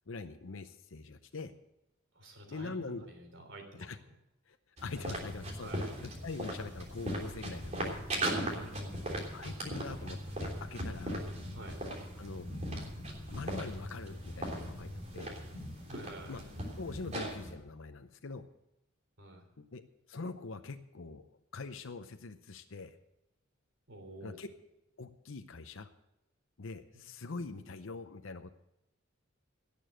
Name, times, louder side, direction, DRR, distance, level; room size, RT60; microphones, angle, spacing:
voice 1, 0.1-1.5 2.5-3.1 3.8-4.0 4.5-4.6 4.8-5.7 6.0-8.0 9.3-11.2 12.2-12.5 13.3-15.3 16.3-16.4 16.8-18.4 19.6-19.8 20.1-21.3 21.5-23.0 24.2-24.5 25.0-25.9 26.6-28.5, left 3 dB, 70° left, 7 dB, 0.7 m, -43 dB
voice 2, 2.2-3.9 5.6-6.0 8.3-9.1 11.5-11.8 15.9-16.4 19.2-19.4 23.9-24.4, right 1 dB, 65° right, 4 dB, 3.5 m, -49 dB
sound 1, 4.8-17.5, right 1 dB, 35° right, 3.3 m, -39 dB
18.0 x 6.9 x 7.6 m, 0.89 s
head